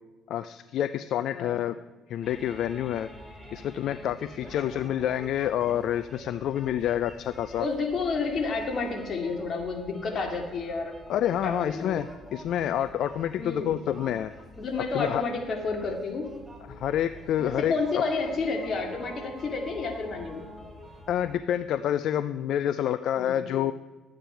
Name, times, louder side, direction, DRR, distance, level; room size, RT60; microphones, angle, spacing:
voice 1, 0.3-1.8 2.1-3.1 3.5-7.7 11.1-14.3 14.9-15.2 16.7-18.0 21.1-23.7, left 10 dB, 70° left, 13 dB, 0.4 m, -28 dB
sound 1, 2.2-21.4, equal, ahead, 2.6 m, -46 dB
voice 2, 7.6-10.9 11.4-12.0 13.4-13.8 14.6-16.3 17.4-20.4 23.2-23.4, left 4 dB, 50° left, 3 dB, 2.2 m, -30 dB
11.5 x 8.7 x 4.5 m, 1.3 s
cardioid pair, 90°, 0 cm